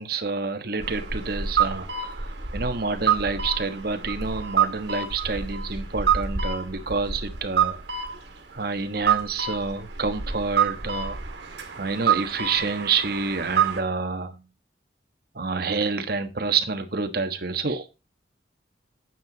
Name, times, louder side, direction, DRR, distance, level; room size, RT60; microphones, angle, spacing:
voice 1, 0.0-7.8 8.5-11.2 11.8-14.4 15.3-17.9, right 4 dB, 60° right, 1.4 m, -28 dB
sound 1, 0.8-13.8, right 7 dB, 80° right, 2.1 m, -27 dB
9.2 x 7.6 x 4.0 m
head